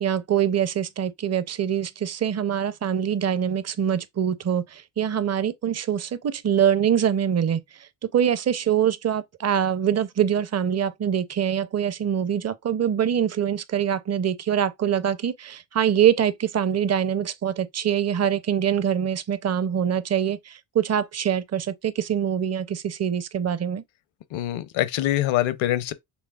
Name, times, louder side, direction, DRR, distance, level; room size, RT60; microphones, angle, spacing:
voice 1, 0.0-23.8, right 9 dB, 35° right, 0.6 m, -24 dB
voice 2, 24.3-25.9, left 14 dB, 65° left, 0.7 m, -24 dB
6.2 x 3.2 x 2.3 m
supercardioid pair, 70°, 49 cm